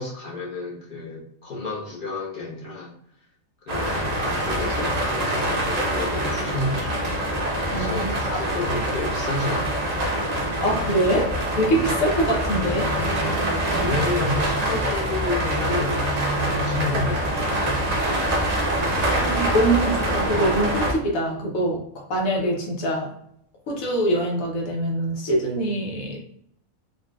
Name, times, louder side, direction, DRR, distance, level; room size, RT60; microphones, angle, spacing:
voice 1, 0.0-2.9 3.7-7.2 7.7-10.1 11.6-12.0 13.5-16.0 16.4-18.1, left 2 dB, 45° left, -3 dB, 0.8 m, -31 dB
sound 1, 3.7-20.9, right 1 dB, 50° right, 0.4 m, -25 dB
Piano, 6.0-12.9, equal, 65° left, 1.9 m, -41 dB
voice 2, 7.7-8.4 10.6-12.9 19.1-21.8 22.1-23.1 23.7-26.2, right 1 dB, 80° left, 0 dB, 1.2 m, -24 dB
3.9 x 2.2 x 2.3 m, 0.71 s
omnidirectional pair, 1.4 m